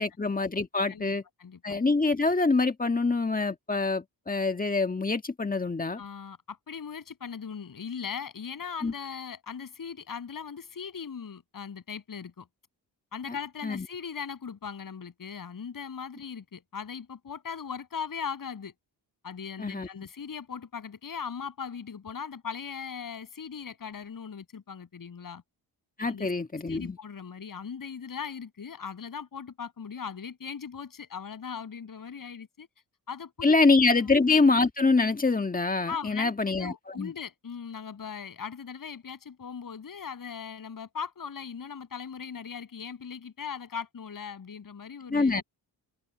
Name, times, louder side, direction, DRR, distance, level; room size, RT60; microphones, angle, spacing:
voice 1, 0.0-1.2 1.6-6.0 8.8-8.9 13.6-13.9 19.6-19.9 26.0-27.0 33.4-37.1 45.1-45.4, left 3 dB, 20° left, 1.6 m, -25 dB
voice 2, 1.4-1.8 6.0-12.5 13.1-18.7 19.2-25.4 26.0-26.3 26.7-32.7 33.1-33.6 33.9-34.1 35.9-45.4, left 6 dB, 55° left, 7.7 m, -39 dB
cardioid pair, 95°, 40 cm